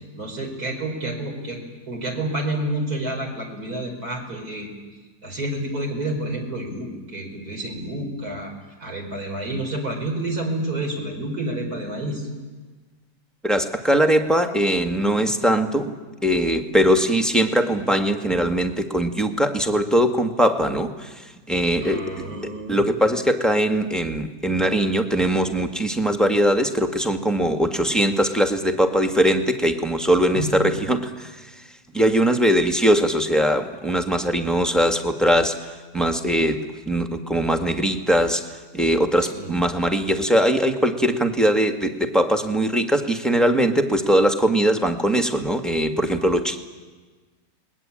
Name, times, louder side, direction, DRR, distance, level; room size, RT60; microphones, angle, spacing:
voice 1, 0.1-1.6 1.9-4.7 5.2-8.5 8.8-12.3 21.8-22.8 30.3-30.5 39.2-39.6, right 1 dB, 60° right, 1 dB, 5.7 m, -29 dB
voice 2, 13.4-15.9 16.2-31.5 31.9-38.5 38.7-46.6, equal, ahead, 5 dB, 1.6 m, -21 dB
30.0 x 21.0 x 8.8 m, 1.3 s
omnidirectional pair, 1.8 m